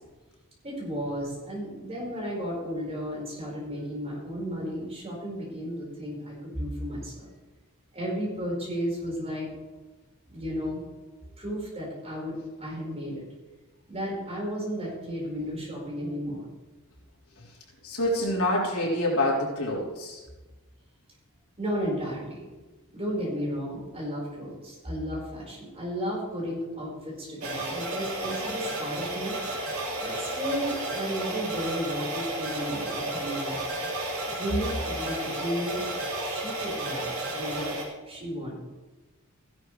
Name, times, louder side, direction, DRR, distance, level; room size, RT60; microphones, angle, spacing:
voice 1, 0.6-7.3 7.9-9.5 10.3-10.8 11.4-13.2 13.9-16.4 21.6-22.4 22.9-29.4 30.0-33.6 34.3-35.8 36.2-37.8 38.1-38.6, equal, 30° right, -4 dB, 5.0 m, -33 dB
voice 2, 17.8-20.2, left 1 dB, 75° left, -3 dB, 3.6 m, -26 dB
sound 1, 27.4-37.8, right 1 dB, 70° right, 3.2 m, -32 dB
16.0 x 11.0 x 3.3 m, 1.2 s
head